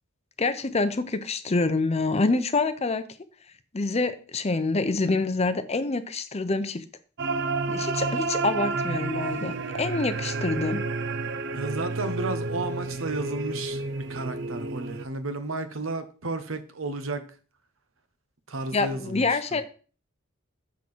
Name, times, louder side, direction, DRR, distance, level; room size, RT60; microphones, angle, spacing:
voice 1, 0.4-3.0 3.7-6.8 7.7-10.8 18.7-19.6, left 3 dB, 30° left, 0.7 m, -26 dB
sound 1, 7.2-15.1, right 3 dB, 60° right, 0.5 m, -30 dB
voice 2, 11.5-17.2 18.5-19.6, right 2 dB, 85° right, 1.0 m, -33 dB
7.2 x 3.8 x 6.1 m
head